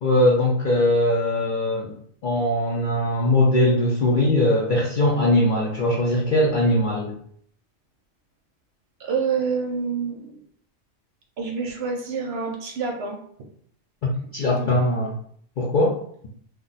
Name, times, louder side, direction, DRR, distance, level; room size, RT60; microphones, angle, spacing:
voice 1, 0.0-1.9 2.2-7.1 14.0-15.1 15.6-16.0, left 1 dB, 60° left, -4 dB, 0.5 m, -20 dB
voice 2, 9.0-10.4 11.4-13.2 14.6-14.7, right 5 dB, 65° right, 1 dB, 0.7 m, -27 dB
2.4 x 2.1 x 3.8 m, 0.63 s
omnidirectional pair, 1.3 m